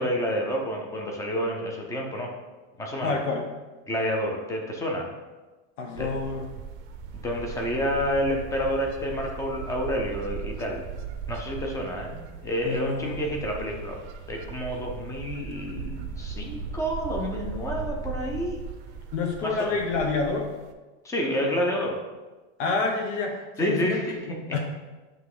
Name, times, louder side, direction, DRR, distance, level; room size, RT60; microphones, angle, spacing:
voice 1, 0.0-2.3 2.8-3.1 3.9-5.1 5.9-6.2 7.1-10.8 11.3-14.0 14.3-18.6 19.4-19.7 21.0-22.0 23.6-24.4, equal, 10° left, 1 dB, 0.4 m, -29 dB
voice 2, 3.0-3.5 5.8-6.5 12.6-13.4 19.1-20.5 22.6-24.2 24.5-24.6, left 4 dB, 75° left, 2 dB, 1.1 m, -28 dB
sound 1, 6.0-20.7, right 5 dB, 45° right, 0.5 m, -38 dB
8.0 x 3.0 x 4.7 m, 1.2 s
supercardioid pair, 165°, 37 cm